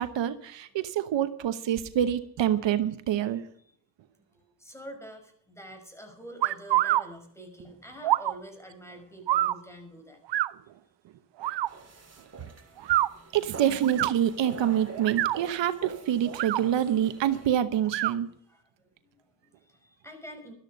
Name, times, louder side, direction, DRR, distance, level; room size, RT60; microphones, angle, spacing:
voice 1, 0.0-3.4 13.3-18.3, right 10 dB, 85° right, 11 dB, 1.0 m, -26 dB
voice 2, 4.2-10.2 18.5-20.5, equal, 5° left, 5 dB, 5.7 m, -47 dB
sound 1, 6.4-7.0 8.0-8.3 9.3-9.6 10.3-10.5 11.4-11.7 12.8-13.1 13.8-14.1 14.9-15.4 16.3-16.6 17.9-18.1, right 14 dB, 70° right, 0.6 m, -25 dB
sound 2, 11.7-17.6, right 3 dB, 35° right, 3.2 m, -45 dB
13.5 x 13.0 x 5.2 m, 0.64 s
cardioid pair, 65°, 43 cm